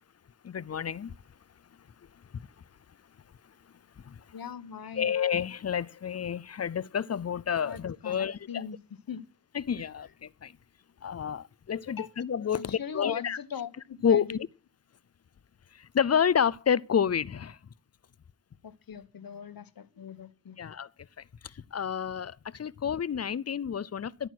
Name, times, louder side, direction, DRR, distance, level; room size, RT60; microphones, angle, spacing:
voice 1, 0.4-1.1 2.3-2.4 4.0-4.2 5.0-8.6 9.5-10.5 11.0-13.4 14.0-14.5 15.7-17.6 20.6-20.9 21.2-24.3, left 8 dB, 45° left, 0.5 m, -29 dB
voice 2, 4.3-5.2 7.6-8.8 9.1-9.2 11.9-12.1 12.5-14.4 18.6-20.6, left 8 dB, 75° left, 1.1 m, -40 dB
12.5 x 9.2 x 6.0 m
wide cardioid pair, 90°, 35 cm